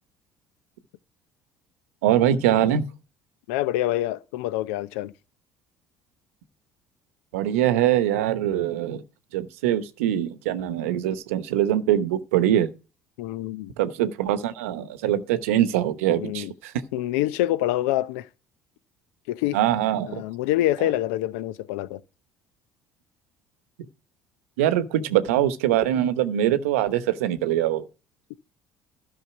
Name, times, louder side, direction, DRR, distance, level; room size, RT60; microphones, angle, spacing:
voice 1, 2.0-2.9 7.3-9.0 9.3-12.7 13.8-16.7 19.5-20.2 24.6-27.8, right 11 dB, 85° right, 0.9 m, -23 dB
voice 2, 3.5-5.1 13.2-13.7 16.1-16.5 16.9-18.3 19.3-19.6 20.1-22.0, left 14 dB, 80° left, 0.6 m, -26 dB
12.5 x 5.6 x 5.8 m
hypercardioid pair, 75°, 7 cm